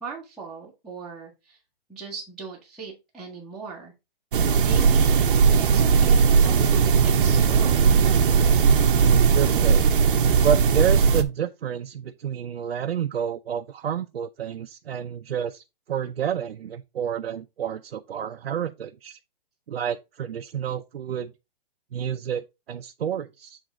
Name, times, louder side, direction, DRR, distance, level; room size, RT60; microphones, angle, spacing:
voice 1, 0.0-1.6 1.9-3.9 4.6-7.9, right 5 dB, ahead, 1.2 m, -39 dB
sound 1, 4.3-11.2, right 6 dB, 60° right, 0.9 m, -18 dB
voice 2, 9.3-9.9 10.4-19.2 19.7-21.3 21.9-23.6, right 8 dB, 85° right, 0.7 m, -29 dB
7.9 x 3.6 x 3.9 m
hypercardioid pair, 165°, 30 cm